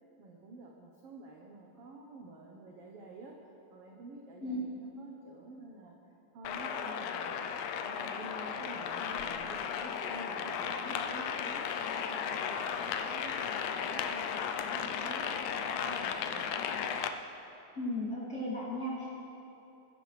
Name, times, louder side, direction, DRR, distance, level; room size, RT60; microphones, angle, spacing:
voice 1, 0.2-3.4 3.7-6.0 6.3-7.5 7.8-16.6, right 3 dB, 75° right, -1 dB, 1.3 m, -49 dB
sound 1, 6.4-17.1, left 7 dB, 85° left, 1.7 m, -35 dB
voice 2, 17.8-19.1, left 1 dB, 25° left, -7 dB, 3.1 m, -35 dB
21.5 x 10.5 x 3.3 m, 3.0 s
omnidirectional pair, 4.0 m